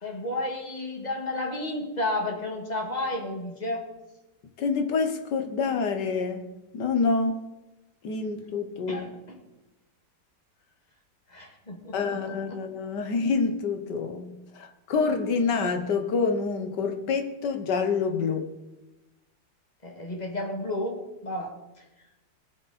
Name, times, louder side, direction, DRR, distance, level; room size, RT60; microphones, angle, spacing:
voice 1, 0.0-3.9 8.9-9.4 11.3-12.6 19.8-21.9, left 1 dB, 25° left, 2.0 m, -32 dB
voice 2, 4.6-6.5 6.7-7.4 8.0-9.1 11.9-18.5, left 4 dB, 70° left, 1.7 m, -27 dB
20.5 x 7.7 x 4.2 m
omnidirectional pair, 1.9 m